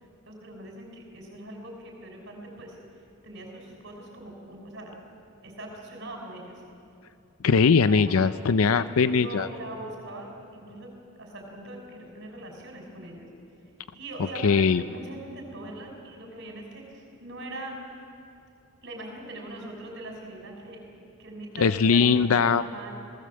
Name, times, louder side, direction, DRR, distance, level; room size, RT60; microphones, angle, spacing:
voice 1, 0.3-2.8 3.2-4.9 5.4-6.6 7.9-8.2 8.6-13.3 13.9-17.8 18.8-20.8 21.2-22.3 22.6-22.9, right 1 dB, 60° right, 1 dB, 5.7 m, -41 dB
voice 2, 7.4-9.5 14.4-14.8 21.6-22.6, left 5 dB, 85° left, 13 dB, 0.5 m, -20 dB
26.5 x 18.0 x 7.7 m, 2.6 s
head